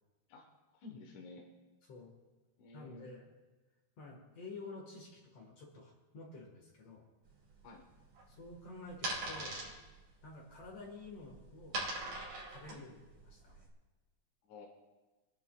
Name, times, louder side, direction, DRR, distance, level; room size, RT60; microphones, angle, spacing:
voice 1, 0.7-1.5 2.6-3.1 7.6-7.8 12.7-12.8 14.5-14.7, left 3 dB, 75° left, 0 dB, 2.7 m, -52 dB
voice 2, 2.7-3.2 4.0-7.0 8.3-9.6 10.2-11.8 12.5-13.7, left 3 dB, 55° left, -1 dB, 2.6 m, -50 dB
sound 1, 7.2-13.7, right 2 dB, 80° right, 4.2 m, -43 dB
25.5 x 11.0 x 2.3 m, 1.2 s
omnidirectional pair, 3.5 m